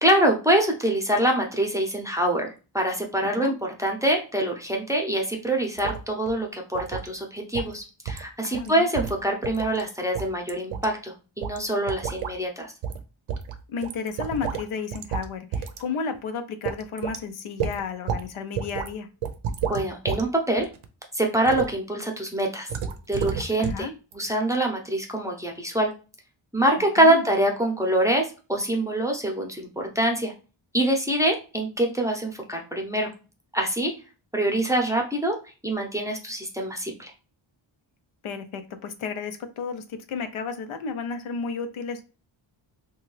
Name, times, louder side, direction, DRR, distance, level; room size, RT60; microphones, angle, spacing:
voice 1, 0.0-12.7 19.7-20.7 21.1-22.7 23.1-23.9 24.1-25.9 26.5-30.3 30.7-33.1 33.5-33.9 34.3-35.4 35.6-37.1, right 1 dB, 5° right, 1 dB, 0.6 m, -25 dB
voice 2, 3.2-3.5 8.4-8.9 13.7-19.1 23.6-23.9 27.0-27.2 38.2-42.0, left 5 dB, 80° left, 8 dB, 0.6 m, -33 dB
sound 1, 5.8-6.0 6.3-6.4 6.7-7.1 7.5-7.7 8.1-8.3 8.5-8.7 8.9-9.8 10.1-10.9 11.4-11.6 11.9-12.3 12.8-13.0 13.3-14.7 14.9-15.3 15.5-15.8 16.1-16.2 16.6-17.2 17.6-18.2 18.5-18.9 19.2-20.2 20.6-20.9 21.4-21.7 22.7-23.9 24.1-24.2, right 7 dB, 85° right, 0.6 m, -30 dB
2.7 x 2.3 x 3.1 m, 0.33 s
wide cardioid pair, 100°, 48 cm